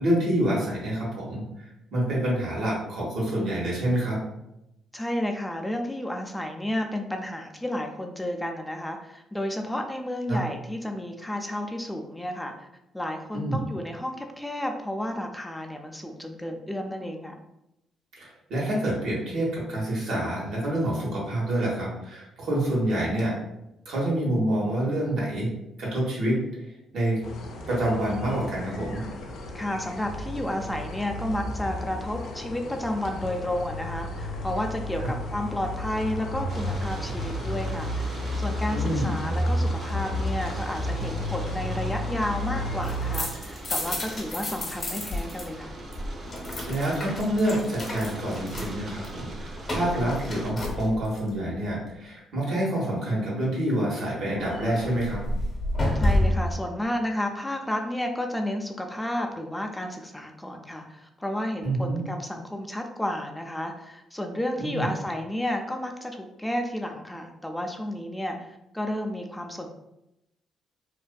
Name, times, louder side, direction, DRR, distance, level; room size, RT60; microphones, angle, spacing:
voice 1, 0.0-4.2 10.3-10.4 13.3-13.7 18.2-23.3 23.9-25.5 25.8-26.3 26.9-27.2 27.7-29.0 38.7-39.2 46.7-55.2 61.6-62.0 64.6-64.9, right 1 dB, 75° right, -5 dB, 1.0 m, -27 dB
voice 2, 4.9-12.7 12.9-17.3 29.5-45.7 55.9-68.5 68.7-69.7, left 1 dB, 5° left, 3 dB, 0.4 m, -32 dB
sound 1, 27.2-43.2, left 1 dB, 75° left, 0.4 m, -32 dB
sound 2, 36.5-50.5, right 1 dB, 50° right, 0.5 m, -41 dB
sound 3, 42.8-45.5 45.7-51.3 54.4-56.6, left 1 dB, 40° left, 0.8 m, -30 dB
2.5 x 2.4 x 2.2 m, 0.88 s
cardioid pair, 85°, 0 cm